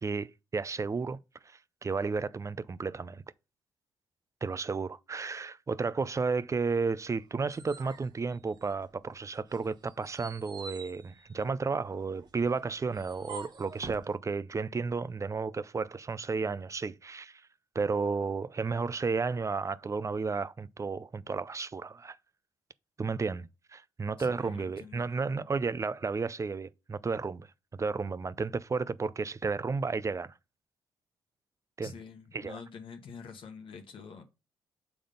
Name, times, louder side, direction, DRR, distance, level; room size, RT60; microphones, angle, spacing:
voice 1, 0.0-1.2 1.4-3.2 4.4-17.4 17.7-22.2 23.0-27.5 27.7-30.3 31.8-31.9 32.3-32.6, right 4 dB, 30° right, 0.5 m, -33 dB
sound 1, 7.1-9.0 9.5-14.1, right 4 dB, 50° right, 1.2 m, -48 dB
voice 2, 24.2-25.1 31.8-34.2, left 5 dB, 60° left, 1.0 m, -47 dB
6.9 x 3.7 x 5.1 m
supercardioid pair, 50°, 10 cm